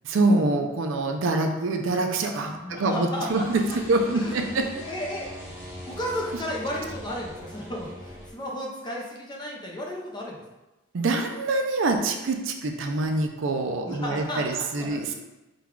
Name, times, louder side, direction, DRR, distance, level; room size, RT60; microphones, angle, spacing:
voice 1, 0.0-4.7 10.9-15.1, right 2 dB, 60° right, 4 dB, 0.4 m, -25 dB
voice 2, 2.2-3.4 4.1-5.2 5.9-10.4 13.8-15.1, left 1 dB, 20° left, -2 dB, 0.6 m, -34 dB
sound 1, 3.3-8.3, equal, 10° right, 0.9 m, -41 dB
3.8 x 2.3 x 4.4 m, 1.0 s
head